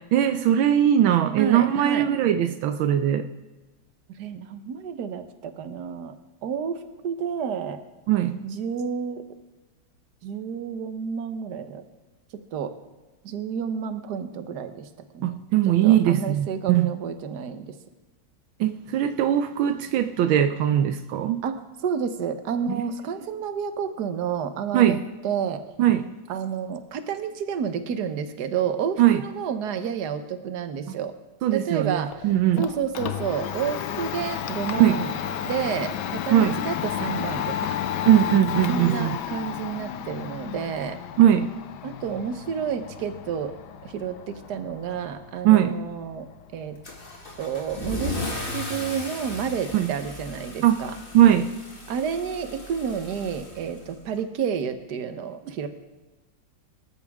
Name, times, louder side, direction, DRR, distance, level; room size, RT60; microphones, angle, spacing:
voice 1, 0.1-3.3 8.1-8.4 15.2-16.9 18.6-21.4 24.7-25.0 25.8-26.0 29.0-29.2 31.4-32.6 34.8-35.0 36.3-36.6 38.1-39.2 41.2-41.5 45.4-45.7 49.7-49.9 50.6-50.8 51.1-51.5, right 11 dB, 80° right, 9 dB, 1.5 m, -20 dB
voice 2, 1.4-2.1 4.2-6.1 6.4-7.8 8.4-9.2 10.2-11.8 12.5-12.7 13.2-14.9 15.1-15.4 15.7-17.8 21.4-25.6 26.3-31.1 31.5-32.3 32.6-35.1 35.4-37.8 38.7-41.0 41.8-43.5 43.8-46.8 47.4-48.2 48.5-51.0 51.9-55.7, right 7 dB, 60° right, 9 dB, 1.5 m, -30 dB
Domestic sounds home sounds, 32.1-48.0, left 9 dB, 65° left, 1.2 m, -33 dB
Car / Engine starting / Accelerating revving vroom, 46.8-54.2, left 2 dB, 25° left, 2.3 m, -36 dB
25.5 x 13.5 x 3.6 m, 1.2 s
omnidirectional pair, 2.2 m